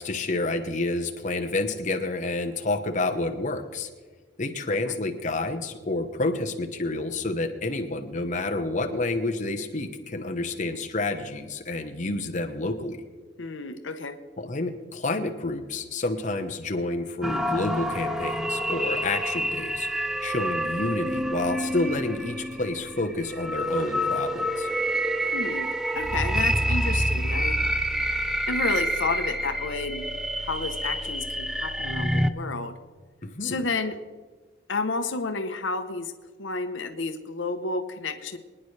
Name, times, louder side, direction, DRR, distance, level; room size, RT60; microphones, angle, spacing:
voice 1, 0.0-3.9 4.4-13.0 14.4-19.9 20.2-24.7 33.2-33.6, left 2 dB, 40° left, 5 dB, 0.9 m, -29 dB
voice 2, 13.4-14.2 25.3-25.7 25.9-27.6 28.5-30.1 30.4-32.7 33.4-34.0 34.7-36.1 36.4-38.4, left 3 dB, 85° left, 8 dB, 0.9 m, -31 dB
sound 1, 17.2-32.3, equal, 5° right, 0.5 m, -27 dB
23.5 x 9.9 x 3.3 m, 1.4 s
head